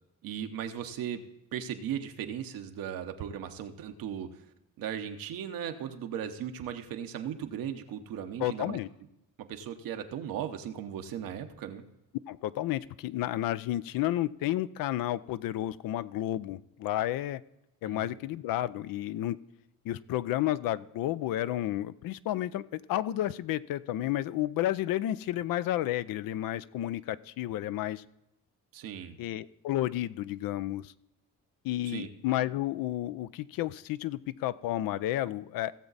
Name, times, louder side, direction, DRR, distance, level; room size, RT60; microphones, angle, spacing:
voice 1, 0.2-1.2 1.5-4.4 4.8-8.8 9.4-11.8 17.8-18.2 28.7-29.2 31.9-32.1, right 9 dB, 85° right, 7 dB, 1.0 m, -37 dB
voice 2, 8.4-8.9 12.3-17.4 17.8-19.4 19.8-28.0 29.2-30.9 31.6-35.7, left 14 dB, 80° left, 16 dB, 0.5 m, -31 dB
16.5 x 7.1 x 4.0 m, 0.88 s
supercardioid pair, 65°, 34 cm